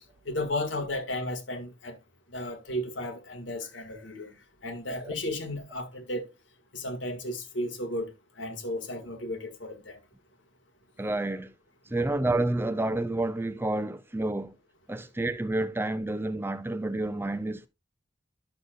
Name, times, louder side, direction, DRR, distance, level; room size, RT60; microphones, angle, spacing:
voice 1, 0.3-2.0 2.3-4.3 4.6-6.3 6.7-8.1 8.4-10.0, left 1 dB, 90° left, 1.8 m, -34 dB
voice 2, 11.0-11.5 11.9-14.5 14.9-17.7, right 2 dB, 10° right, 0.5 m, -29 dB
11.5 x 6.4 x 2.4 m
head